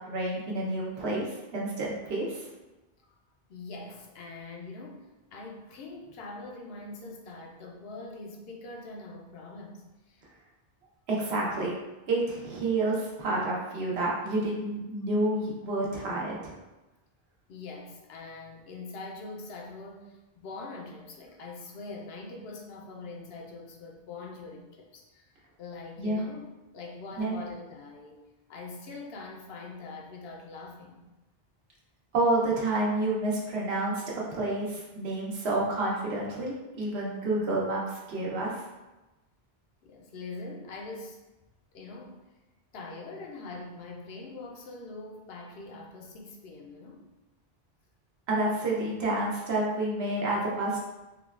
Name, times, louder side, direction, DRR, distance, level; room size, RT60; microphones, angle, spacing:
voice 1, 0.1-2.5 11.1-11.7 12.1-16.5 26.0-26.3 27.2-27.4 32.1-38.6 48.3-50.8, right 2 dB, 85° right, -4 dB, 1.0 m, -29 dB
voice 2, 3.5-10.2 17.5-26.5 26.7-28.2 28.5-31.1 39.8-41.2 41.7-42.2 42.7-47.1, left 3 dB, 75° left, 1 dB, 0.8 m, -43 dB
3.8 x 2.1 x 2.3 m, 1.1 s
omnidirectional pair, 1.0 m